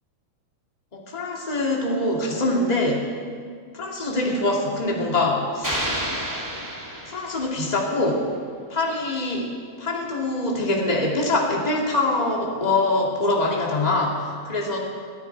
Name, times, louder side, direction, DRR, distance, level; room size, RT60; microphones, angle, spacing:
voice 1, 0.9-3.0 3.7-5.8 7.1-8.2 8.7-9.5 9.8-14.8, left 2 dB, 15° left, -2 dB, 2.0 m, -24 dB
sound 1, 5.6-7.8, equal, 10° right, 1.4 m, -30 dB
21.5 x 14.0 x 4.7 m, 2.1 s
omnidirectional pair, 3.8 m